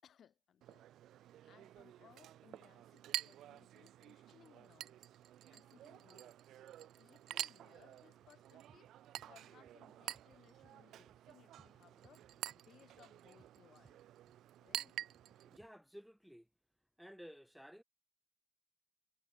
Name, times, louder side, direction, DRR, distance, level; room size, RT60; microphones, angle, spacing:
voice 1, 0.0-0.9 1.4-5.1 5.5-6.4 6.8-8.9 9.3-12.2 12.5-14.0 14.6-15.0, left 9 dB, 60° left, 6.3 m, -66 dB
Chink clink, 0.6-15.6, right 12 dB, 80° right, 0.8 m, -48 dB
sound 1, 7.8-15.7, right 4 dB, 30° right, 2.0 m, -71 dB
voice 2, 15.5-16.5 17.0-17.8, equal, ahead, 0.6 m, -54 dB
cardioid pair, 90°, 0 cm